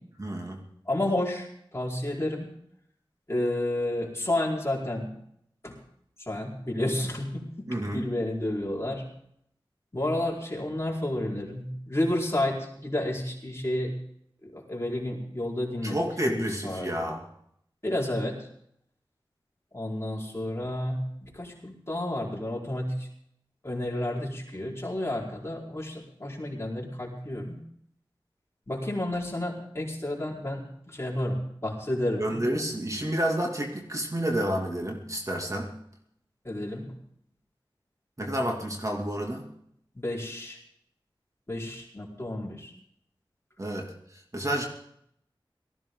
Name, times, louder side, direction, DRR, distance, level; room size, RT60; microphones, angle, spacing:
voice 1, 0.2-0.6 7.7-8.1 15.8-17.2 32.2-35.7 38.2-39.4 43.6-43.9 44.3-44.7, right 1 dB, 35° right, 1 dB, 2.6 m, -29 dB
voice 2, 0.9-1.5 1.7-2.5 3.3-5.1 5.6-5.8 6.3-7.4 7.9-9.0 9.9-13.9 14.5-16.0 16.2-16.9 17.8-18.4 19.7-22.9 23.6-27.6 28.7-30.6 30.9-31.4 31.6-32.4 36.4-36.9 40.0-40.6 41.5-42.7, left 1 dB, 30° left, -2 dB, 4.6 m, -30 dB
18.5 x 14.5 x 3.9 m, 0.70 s
wide cardioid pair, 50°, 9 cm